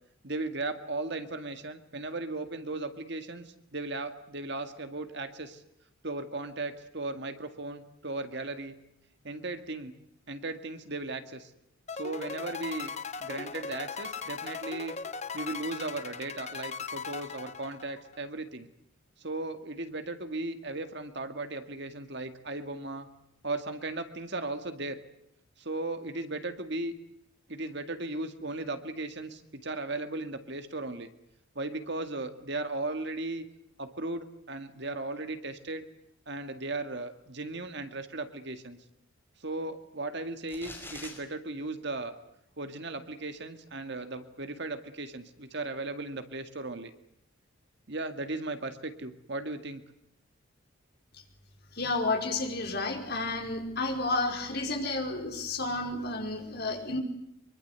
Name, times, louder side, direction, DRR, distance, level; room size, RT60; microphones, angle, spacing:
voice 1, 0.2-5.6 6.0-8.8 9.2-9.9 10.3-11.5 11.9-12.9 13.2-14.9 15.3-18.7 19.2-23.1 23.4-25.0 25.6-26.9 27.5-31.1 31.6-33.4 33.8-35.9 36.3-38.8 39.4-42.2 42.6-46.9 47.9-49.8, right 2 dB, 55° right, 8 dB, 2.0 m, -36 dB
sound 1, 11.9-18.2, left 5 dB, 30° left, 1.0 m, -39 dB
sound 2, 40.5-41.2, left 3 dB, 10° left, 5.5 m, -43 dB
voice 2, 51.7-57.0, left 2 dB, 50° left, 2 dB, 5.2 m, -31 dB
24.5 x 24.0 x 8.2 m, 0.77 s
head